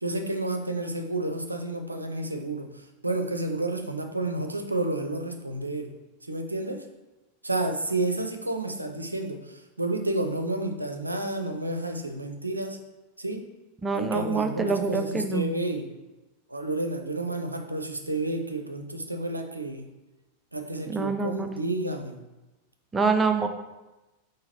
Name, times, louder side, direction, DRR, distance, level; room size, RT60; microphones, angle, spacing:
voice 1, 0.0-5.9 6.3-6.9 7.4-12.8 13.2-13.5 13.9-15.9 16.5-19.9 20.5-22.2, right 2 dB, 85° right, 5 dB, 0.5 m, -30 dB
voice 2, 13.8-15.5 20.9-21.5 22.9-23.5, right 4 dB, 15° right, 6 dB, 0.4 m, -25 dB
3.8 x 3.1 x 4.3 m, 1.1 s
figure-of-eight pair, 90°, 0 cm